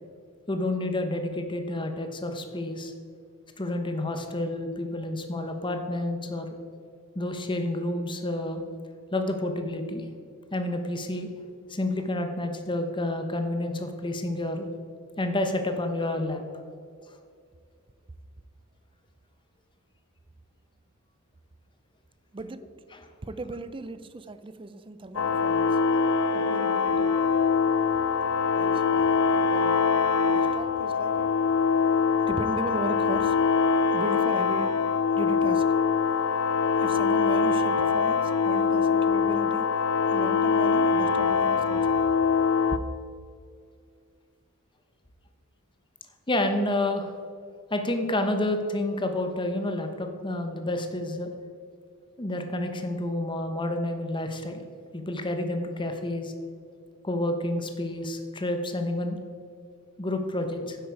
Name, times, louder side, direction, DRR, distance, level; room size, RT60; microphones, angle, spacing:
voice 1, 0.5-2.9 3.6-6.5 7.1-8.6 9.1-10.1 10.5-11.3 11.7-14.7 15.2-16.4 22.9-23.0 46.3-47.1 47.7-51.3 52.2-54.6 54.9-56.3 57.0-59.2 60.0-60.8, left 1 dB, 20° left, 6 dB, 1.0 m, -29 dB
voice 2, 22.3-22.7 23.2-25.7 26.3-27.1 28.5-29.8 30.3-31.4 32.3-33.3 33.9-34.8 35.1-35.8 36.8-39.7 40.1-42.1, right 2 dB, 25° right, 13 dB, 0.4 m, -37 dB
sound 1, 25.2-42.8, left 5 dB, 65° left, 0.5 m, -23 dB
10.0 x 8.0 x 4.7 m, 2.2 s
head